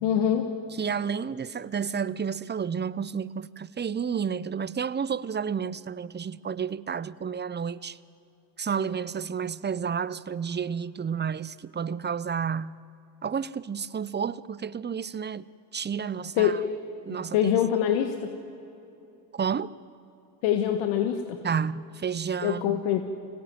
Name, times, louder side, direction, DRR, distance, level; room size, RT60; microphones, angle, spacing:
voice 1, 0.0-0.5 16.4-16.5 17.3-18.3 20.4-21.4 22.4-23.0, left 10 dB, 80° left, 1.6 m, -24 dB
voice 2, 0.7-8.0 8.6-12.8 13.2-16.6 17.1-17.5 19.3-19.7 21.4-22.8, right 7 dB, 20° right, 0.7 m, -31 dB
25.0 x 17.5 x 9.4 m
supercardioid pair, 80°, 49 cm